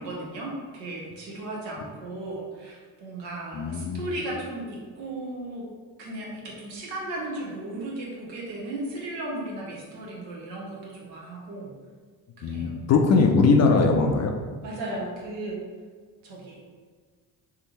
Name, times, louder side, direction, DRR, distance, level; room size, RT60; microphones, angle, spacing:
voice 1, 0.0-5.7 6.0-11.7 12.4-12.7 14.6-15.6 16.2-16.6, right 1 dB, 80° right, -3 dB, 0.9 m, -35 dB
voice 2, 3.5-4.2 12.4-14.3, left 4 dB, 35° left, 3 dB, 0.4 m, -21 dB
3.4 x 2.4 x 3.0 m, 1.5 s
hypercardioid pair, 50°, 49 cm